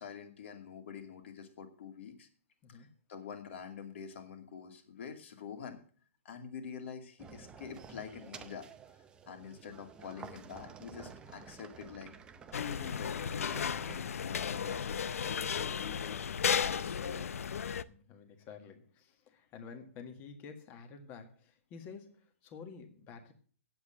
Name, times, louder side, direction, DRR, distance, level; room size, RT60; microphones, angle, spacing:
voice 1, 0.0-2.3 2.7-5.8 6.2-8.7 9.3-12.1 12.5-13.8 14.2-16.2 16.6-17.3, left 7 dB, 55° left, 6 dB, 2.4 m, -46 dB
voice 2, 2.6-2.9 17.7-23.3, left 5 dB, 25° left, 7 dB, 1.7 m, -50 dB
sound 1, 7.2-14.1, right 6 dB, 10° right, 0.6 m, -51 dB
sound 2, 12.5-17.8, left 7 dB, 80° left, 0.6 m, -34 dB
8.5 x 7.9 x 7.6 m, 0.43 s
hypercardioid pair, 155°, 8 cm